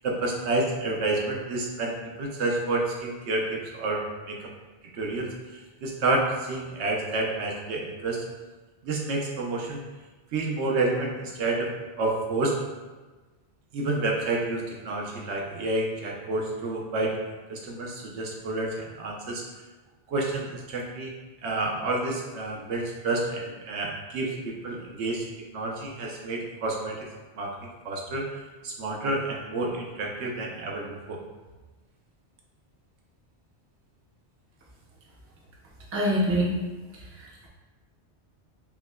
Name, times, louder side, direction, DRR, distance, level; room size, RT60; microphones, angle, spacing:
voice 1, 0.0-4.5 4.9-8.2 8.8-9.8 10.3-11.7 12.0-12.6 13.7-17.2 17.5-19.5 20.1-21.1 21.4-25.3 25.5-27.1 27.3-28.3 28.6-31.2, right 2 dB, 80° right, 0 dB, 0.9 m, -29 dB
voice 2, 35.9-36.5 37.2-37.5, equal, 20° right, -3 dB, 0.4 m, -25 dB
5.7 x 2.0 x 2.2 m, 1.2 s
omnidirectional pair, 1.1 m